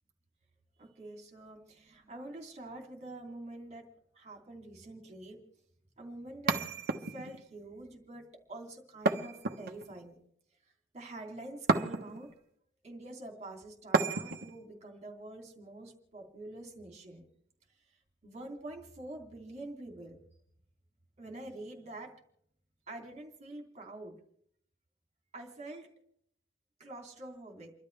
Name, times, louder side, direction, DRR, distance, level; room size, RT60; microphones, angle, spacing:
voice 1, 0.8-3.8 4.1-5.4 6.0-6.7 7.0-10.2 10.9-12.3 12.8-17.3 18.2-20.2 21.2-22.1 22.9-24.2 25.3-25.9 26.8-27.7, right 2 dB, 35° right, 1 dB, 3.1 m, -46 dB
sound 1, 6.5-7.4 9.1-10.0 11.7-12.3 13.9-14.6, right 3 dB, 55° right, 1.1 m, -31 dB
29.5 x 12.5 x 3.4 m, 0.69 s
head